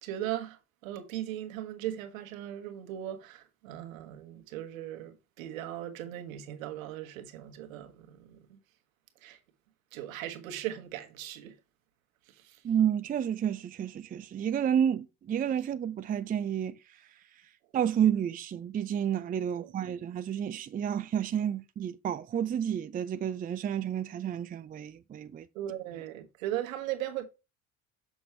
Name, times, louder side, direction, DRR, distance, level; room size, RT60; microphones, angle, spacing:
voice 1, 0.0-8.6 9.2-9.4 9.9-11.5 12.3-12.6 19.5-19.9 25.5-27.3, right 12 dB, 65° right, 1.5 m, -38 dB
voice 2, 12.6-17.0 17.7-25.5, right 9 dB, 20° right, 0.5 m, -30 dB
6.9 x 6.2 x 3.2 m
figure-of-eight pair, 65°, 43 cm